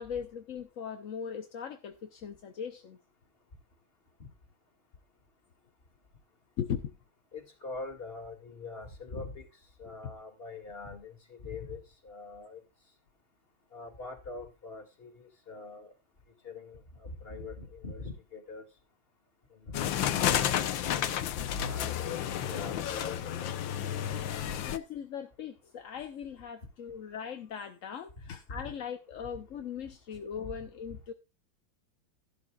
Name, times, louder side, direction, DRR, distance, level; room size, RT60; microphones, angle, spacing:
voice 1, 0.0-3.0 6.6-7.0 24.6-31.1, left 7 dB, 55° left, 1.0 m, -39 dB
voice 2, 7.3-9.5 9.8-12.6 13.7-15.9 16.4-18.6 19.6-20.8 21.0-21.1 21.5-23.6 24.5-24.6 28.2-28.6, left 3 dB, 30° left, 2.4 m, -43 dB
sound 1, 19.7-24.8, left 10 dB, 75° left, 1.6 m, -31 dB
14.0 x 11.5 x 2.4 m
omnidirectional pair, 2.1 m